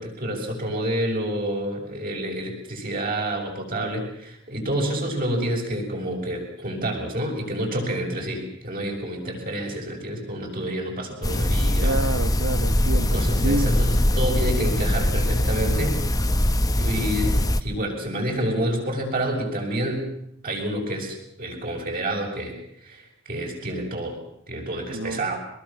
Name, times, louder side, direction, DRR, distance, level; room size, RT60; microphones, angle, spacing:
voice 1, 0.0-12.0 13.1-16.0 16.8-20.1 20.4-22.6 22.8-24.2 24.5-25.4, right 1 dB, 45° right, 0 dB, 7.0 m, -28 dB
sound 1, 11.2-17.6, left 1 dB, 20° left, 1.1 m, -22 dB
voice 2, 11.8-13.8 24.9-25.3, right 2 dB, 80° right, 8 dB, 1.1 m, -28 dB
24.0 x 21.5 x 7.3 m, 0.72 s
head